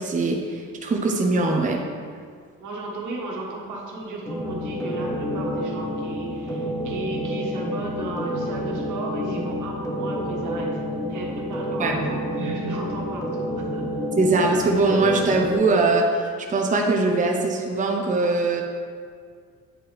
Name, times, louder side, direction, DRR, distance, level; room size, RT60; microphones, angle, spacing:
voice 1, 0.0-1.8 11.8-12.0 14.2-18.6, right 3 dB, 25° right, 1 dB, 0.7 m, -21 dB
voice 2, 2.6-10.8 11.1-13.9, right 2 dB, 75° right, -2 dB, 1.4 m, -34 dB
sound 1, 4.3-15.5, equal, 10° left, 1.1 m, -29 dB
8.9 x 4.4 x 3.4 m, 2.1 s
cardioid pair, 90°, 30 cm